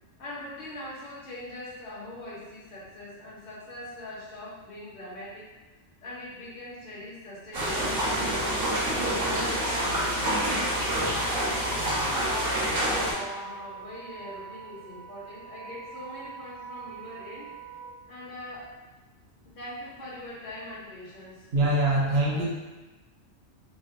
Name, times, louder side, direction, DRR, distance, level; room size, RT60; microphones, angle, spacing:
voice 1, 0.2-5.5 6.0-11.0 11.4-17.5 18.1-18.7 19.6-21.5 21.8-22.5, left 1 dB, 45° left, -7 dB, 0.8 m, -42 dB
sound 1, 7.5-13.1, right 1 dB, 80° right, 1.1 m, -27 dB
Wind instrument woodwind instrument, 8.9-17.9, right 5 dB, 40° right, 0.3 m, -44 dB
voice 2, 21.5-22.5, right 1 dB, 65° right, -4 dB, 0.9 m, -23 dB
3.2 x 2.2 x 2.5 m, 1.1 s
omnidirectional pair, 1.2 m